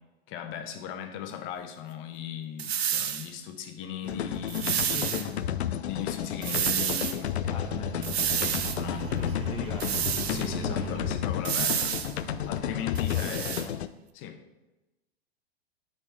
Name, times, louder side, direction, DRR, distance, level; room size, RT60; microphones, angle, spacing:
voice 1, 0.3-5.0 5.8-7.3 8.3-9.2 10.3-12.0 12.5-13.6 14.1-14.4, left 8 dB, 40° left, 6 dB, 1.0 m, -38 dB
sound 1, 2.6-3.3 4.5-5.3 6.4-7.2 8.0-8.8 9.8-10.5 11.4-12.1 12.9-13.7, right 9 dB, 75° right, 0.7 m, -29 dB
sound 2, 4.0-13.9, left 10 dB, 85° left, 0.5 m, -32 dB
voice 2, 4.8-5.3 7.4-7.9 9.1-10.2 10.6-11.1 13.1-13.7, left 5 dB, 20° left, 2 dB, 0.6 m, -40 dB
sound 3, 7.4-12.8, right 11 dB, 20° right, 0.3 m, -40 dB
8.9 x 4.1 x 4.9 m, 1.0 s
hypercardioid pair, 105°, 32 cm